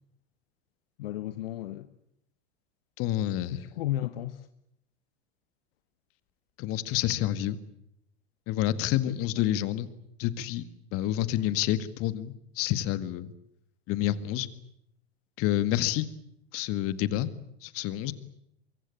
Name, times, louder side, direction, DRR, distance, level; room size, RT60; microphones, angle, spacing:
voice 1, 1.0-1.9 3.4-4.5 8.9-9.0, left 14 dB, 65° left, 1.2 m, -34 dB
voice 2, 3.0-3.6 6.6-7.6 8.5-9.9 10.2-10.6 10.9-13.3 13.9-14.5 15.4-16.1 16.5-17.3 17.6-18.1, left 13 dB, 45° left, 1.9 m, -28 dB
24.0 x 23.5 x 8.6 m
figure-of-eight pair, 90°, 32 cm